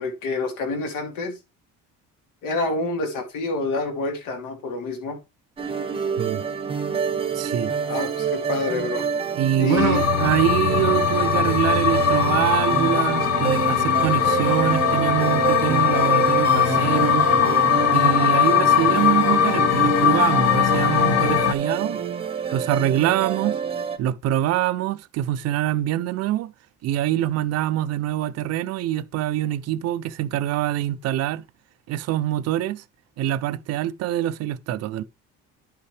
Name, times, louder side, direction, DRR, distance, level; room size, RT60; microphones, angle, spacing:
voice 1, 0.0-1.4 2.4-5.2 7.9-9.1 9.6-10.0, left 3 dB, 80° left, 2.5 m, -27 dB
sound 1, 5.6-24.0, right 6 dB, 20° right, 0.8 m, -27 dB
voice 2, 7.3-7.7 9.4-17.3 17.9-22.0 22.5-23.6 24.0-26.5 26.8-31.4 31.9-32.8 33.2-35.0, right 12 dB, 55° right, 0.5 m, -24 dB
sound 2, 9.8-21.5, left 9 dB, 55° left, 0.7 m, -20 dB
10.5 x 5.6 x 3.3 m
cardioid pair, 170°, 31 cm